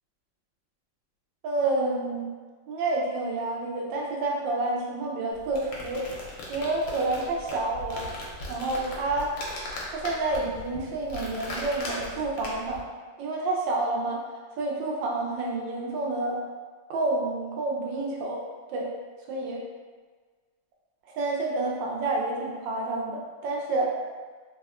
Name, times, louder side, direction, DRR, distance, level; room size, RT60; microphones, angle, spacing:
voice 1, 1.4-2.3 2.7-6.1 6.5-8.1 8.5-9.4 9.9-12.8 13.2-14.2 14.6-16.4 16.9-18.4 18.7-18.9 19.3-19.6 21.2-24.0, right 2 dB, 80° right, -2 dB, 1.3 m, -29 dB
sound 1, 5.3-12.8, left 1 dB, 85° left, 1.3 m, -38 dB
3.4 x 2.2 x 2.3 m, 1.4 s
omnidirectional pair, 2.0 m